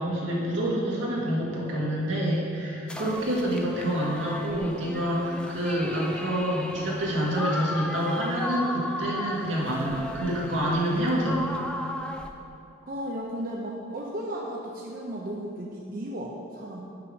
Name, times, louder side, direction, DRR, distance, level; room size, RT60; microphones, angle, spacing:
voice 1, 0.0-11.5, equal, 80° right, -4 dB, 1.7 m, -27 dB
sound 1, 2.9-12.3, left 1 dB, 5° left, 0.3 m, -35 dB
voice 2, 12.8-16.8, right 1 dB, 45° right, -2 dB, 0.6 m, -35 dB
5.9 x 5.0 x 6.3 m, 2.7 s
head